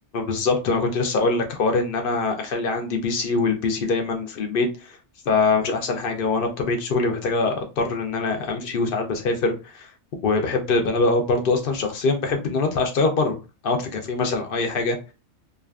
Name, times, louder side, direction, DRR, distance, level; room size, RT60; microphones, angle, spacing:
voice 1, 0.1-5.0 5.3-9.9 10.2-13.4 13.6-15.0, left 3 dB, 55° left, 4 dB, 0.7 m, -23 dB
2.4 x 2.4 x 2.3 m, 0.29 s
omnidirectional pair, 1.3 m